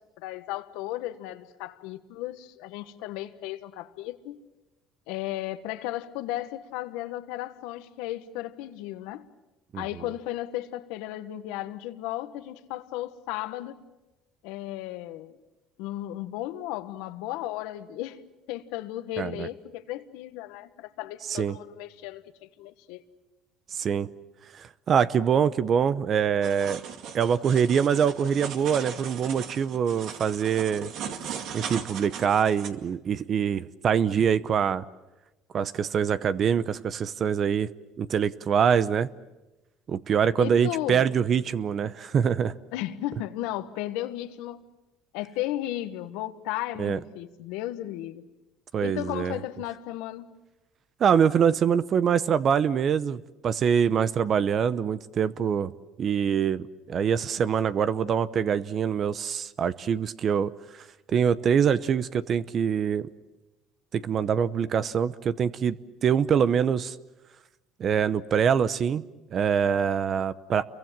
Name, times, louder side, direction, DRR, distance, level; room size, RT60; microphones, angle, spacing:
voice 1, 0.2-4.4 5.1-9.2 9.7-13.8 14.4-15.4 15.8-18.2 18.5-23.0 40.4-41.0 42.7-44.6 45.1-48.3 48.8-50.3, left 14 dB, 80° left, 1.4 m, -35 dB
voice 2, 19.2-19.5 21.3-21.6 23.7-24.1 24.5-26.8 27.1-30.9 31.5-34.8 35.5-37.7 38.0-39.1 39.9-42.5 46.8-47.0 48.7-49.4 51.0-55.7 56.0-60.5 61.1-63.1 63.9-67.0 67.8-69.0 69.3-70.6, right 7 dB, 45° right, 0.8 m, -24 dB
sound 1, 26.4-32.7, right 7 dB, 65° right, 2.2 m, -38 dB
29.0 x 23.0 x 7.5 m
supercardioid pair, 100°, 0 cm